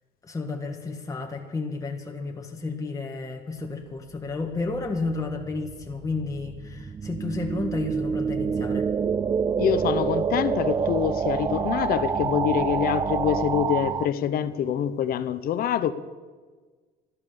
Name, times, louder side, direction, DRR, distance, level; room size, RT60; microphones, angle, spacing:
voice 1, 0.2-8.9, left 3 dB, 20° left, 1 dB, 1.6 m, -32 dB
sound 1, 4.7-14.1, right 6 dB, 25° right, 0.4 m, -27 dB
voice 2, 9.6-15.9, left 9 dB, 60° left, 12 dB, 0.8 m, -25 dB
12.5 x 12.0 x 6.9 m, 1.4 s
cardioid pair, 110°, 17 cm